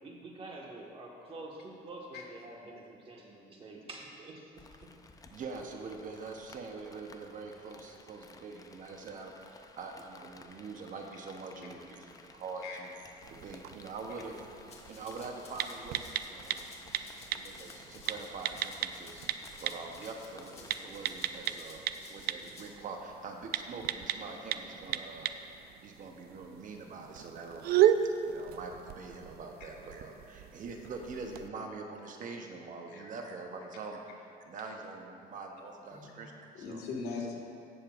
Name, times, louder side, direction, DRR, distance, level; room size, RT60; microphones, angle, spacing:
voice 1, 0.0-4.5 4.8-4.9, right 2 dB, 35° right, -2 dB, 1.6 m, -47 dB
Rain, 4.6-21.6, left 3 dB, 20° left, 0.5 m, -56 dB
voice 2, 5.3-12.9 13.3-14.5 14.9-16.7 17.3-21.8 22.1-27.9 28.2-36.8, right 4 dB, 50° right, 2 dB, 0.9 m, -44 dB
sound 1, 13.2-31.5, right 10 dB, 65° right, 0.4 m, -35 dB
Rattle (instrument), 14.7-22.7, left 4 dB, 40° left, 1.4 m, -54 dB
voice 3, 36.5-37.4, left 4 dB, 70° left, -1 dB, 1.7 m, -39 dB
16.5 x 6.6 x 2.5 m, 2.7 s
cardioid pair, 110°, 17 cm